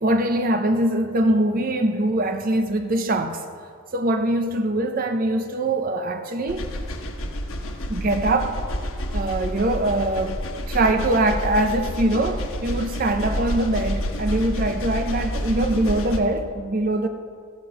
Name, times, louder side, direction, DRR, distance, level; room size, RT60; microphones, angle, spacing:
voice 1, 0.0-3.4 3.9-6.7 7.9-8.6 9.1-17.1, right 1 dB, 40° right, 0.6 m, -23 dB
sound 1, 6.5-16.2, equal, 70° left, 1.2 m, -29 dB
14.5 x 7.8 x 6.4 m
head